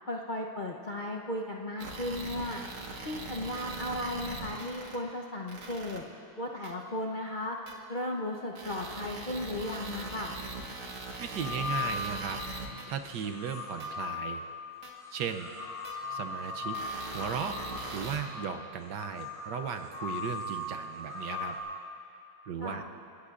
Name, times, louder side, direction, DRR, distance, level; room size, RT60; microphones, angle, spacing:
voice 1, 0.1-2.6 3.0-6.0 6.4-7.6 7.9-10.3 22.6-22.8, left 1 dB, 70° left, 0 dB, 0.4 m, -35 dB
sound 1, 1.8-5.0 5.5-6.0 6.6-6.7 7.7-7.8 8.6-12.9 13.8-13.9 14.8-14.9 15.9-16.0 16.7-18.2, right 3 dB, 90° right, 2.4 m, -41 dB
sound 2, 11.2-12.4 13.0-21.6, left 3 dB, 85° left, 5.5 m, -39 dB
voice 2, 11.2-12.4 12.9-14.4 15.1-15.5 16.1-16.8 17.1-17.6 17.9-21.6 22.5-22.8, right 7 dB, 70° right, 7 dB, 1.2 m, -36 dB
29.5 x 16.5 x 2.5 m, 2.6 s
omnidirectional pair, 2.2 m